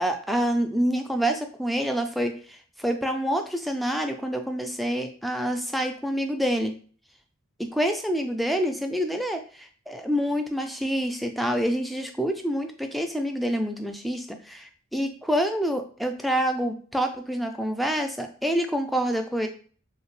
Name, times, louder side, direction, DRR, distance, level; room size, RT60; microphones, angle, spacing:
voice 1, 0.0-6.7 7.6-19.5, equal, ahead, 5 dB, 0.3 m, -27 dB
3.1 x 2.8 x 3.1 m, 0.43 s
head